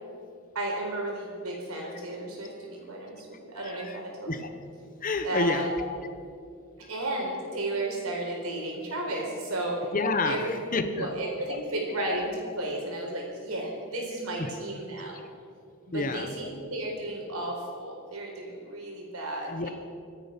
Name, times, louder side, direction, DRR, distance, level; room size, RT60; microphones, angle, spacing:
voice 1, 0.5-4.4 5.2-5.7 6.9-9.9 10.2-10.5 10.9-15.2 15.9-19.7, right 1 dB, 85° right, 0 dB, 4.6 m, -33 dB
voice 2, 3.6-4.0 4.2-4.5 5.0-6.0 9.9-11.1 11.5-11.6 14.4-14.5 15.9-16.3 19.5-19.7, left 3 dB, 40° left, 9 dB, 1.0 m, -29 dB
25.5 x 9.2 x 5.9 m, 2.3 s
head